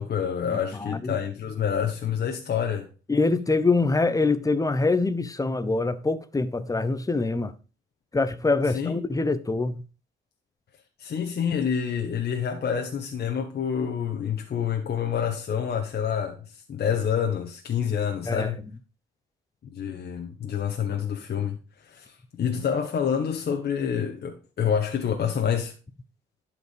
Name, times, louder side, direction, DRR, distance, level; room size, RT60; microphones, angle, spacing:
voice 1, 0.0-2.9 8.7-9.0 11.0-18.6 19.7-25.7, left 8 dB, 55° left, 1.4 m, -27 dB
voice 2, 0.5-1.2 3.1-7.5 8.1-9.8 18.2-18.5, left 3 dB, 15° left, 1.0 m, -24 dB
11.5 x 5.1 x 5.2 m
cardioid pair, 90°, 20 cm